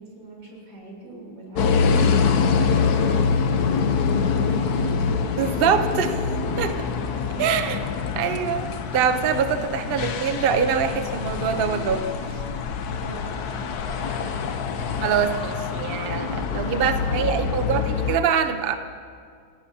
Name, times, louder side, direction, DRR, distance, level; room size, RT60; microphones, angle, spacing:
voice 1, 0.0-5.2 7.3-7.5 12.9-13.7, right 2 dB, 60° right, -3 dB, 4.9 m, -42 dB
sound 1, 1.6-18.2, left 5 dB, 60° left, 1.2 m, -25 dB
voice 2, 5.4-6.2 6.6-6.7 7.4-7.8 8.2-12.1 15.0-18.7, right 7 dB, 80° right, 7 dB, 0.5 m, -24 dB
28.5 x 17.0 x 2.8 m, 2.2 s
omnidirectional pair, 2.3 m